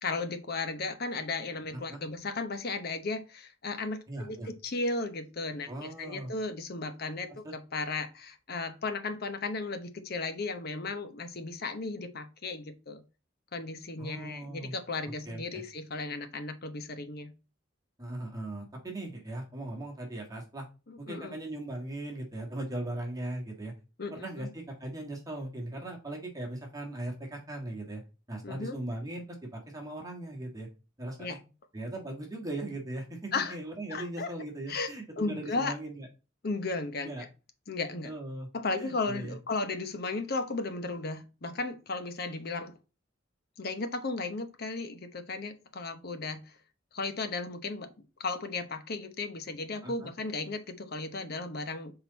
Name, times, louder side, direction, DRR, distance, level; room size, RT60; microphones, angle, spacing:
voice 1, 0.0-13.0 13.5-17.3 20.9-21.4 24.0-24.5 28.4-28.8 31.2-31.4 33.3-33.6 33.9-34.3 34.7-35.8 36.4-37.3 37.7-38.1 38.5-42.7 43.6-46.4 46.9-47.9 48.2-51.9, left 3 dB, 55° left, 8 dB, 0.9 m, -35 dB
voice 2, 4.1-4.5 5.7-6.3 7.3-7.5 14.0-14.7 15.0-15.6 18.0-20.7 21.0-23.7 24.1-28.0 28.3-29.2 29.5-30.7 31.0-31.4 31.7-36.1 37.0-37.3 38.0-38.5 38.8-39.3 49.8-50.1, right 1 dB, 20° right, 0 dB, 1.5 m, -39 dB
6.1 x 3.9 x 4.0 m, 0.30 s
head